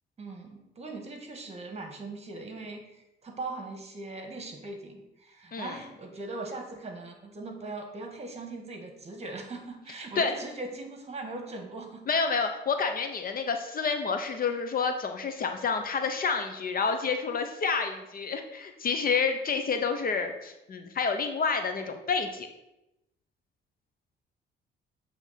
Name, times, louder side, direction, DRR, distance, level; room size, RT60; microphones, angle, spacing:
voice 1, 0.2-12.1, right 2 dB, 30° right, 3 dB, 1.6 m, -40 dB
voice 2, 12.1-22.5, left 5 dB, 45° left, 6 dB, 0.8 m, -29 dB
8.1 x 3.5 x 5.7 m, 0.90 s
cardioid pair, 90°, 20 cm